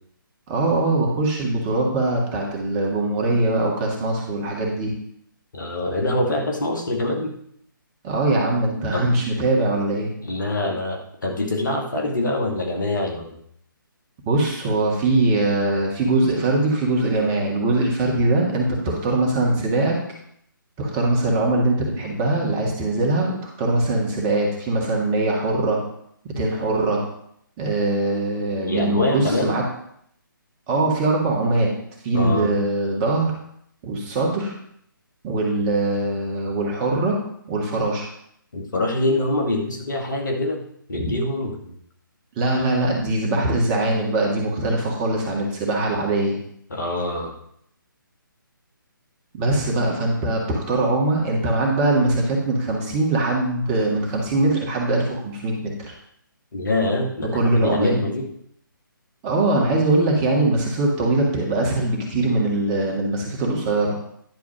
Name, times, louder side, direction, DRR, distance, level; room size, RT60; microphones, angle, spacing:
voice 1, 0.5-4.9 8.0-10.1 14.2-20.0 20.8-25.8 26.4-27.1 27.6-29.6 30.7-31.7 32.0-33.3 33.8-34.5 35.2-37.2 37.5-38.1 40.9-41.1 42.4-46.4 49.4-56.0 57.3-58.0 59.2-64.0, right 2 dB, 20° right, -1 dB, 1.9 m, -22 dB
voice 2, 5.5-7.3 8.9-9.1 10.2-13.4 28.6-29.6 32.1-32.6 38.5-40.6 40.9-41.7 46.7-47.3 56.5-58.3, left 2 dB, 60° left, 0 dB, 2.3 m, -24 dB
10.5 x 4.7 x 6.2 m, 0.70 s
figure-of-eight pair, 140°, 12 cm